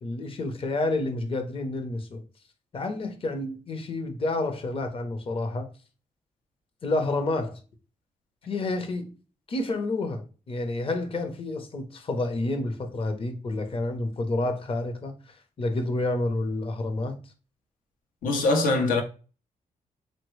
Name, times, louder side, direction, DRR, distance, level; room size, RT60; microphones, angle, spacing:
voice 1, 0.0-2.2 2.7-5.7 6.8-7.6 8.5-9.1 9.5-15.1 15.6-17.1, left 2 dB, 40° left, 0.7 m, -29 dB
voice 2, 18.2-19.0, left 2 dB, 85° left, 0.7 m, -22 dB
3.4 x 2.1 x 3.1 m
cardioid pair, 80°, 14 cm